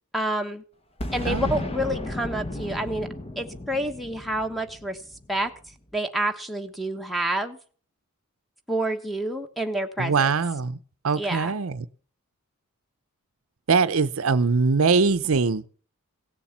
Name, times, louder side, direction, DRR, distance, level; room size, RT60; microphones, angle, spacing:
voice 1, 0.1-0.6 1.1-3.1 3.4-5.0 5.3-5.5 5.9-7.6 8.7-10.3 11.1-11.6, right 1 dB, ahead, 1.2 m, -28 dB
Boom, 1.0-5.7, left 1 dB, 25° left, 1.2 m, -34 dB
voice 2, 10.0-10.8 11.0-11.8 13.7-15.7, right 4 dB, 70° right, 0.7 m, -22 dB
17.0 x 7.2 x 7.3 m
head